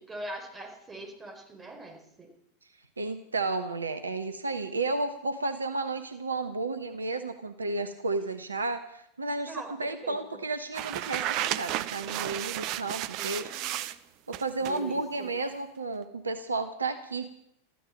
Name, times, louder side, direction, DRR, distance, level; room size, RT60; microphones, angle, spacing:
voice 1, 0.0-2.3 9.5-10.4 13.2-14.0 14.6-15.3, right 1 dB, 15° right, 2 dB, 4.8 m, -43 dB
voice 2, 3.0-13.5 14.3-17.3, right 3 dB, 75° right, 9 dB, 1.1 m, -32 dB
sound 1, 10.7-14.0 14.3-14.8, right 14 dB, 40° right, 0.7 m, -33 dB
14.0 x 13.0 x 7.5 m, 0.76 s
figure-of-eight pair, 90°, 0 cm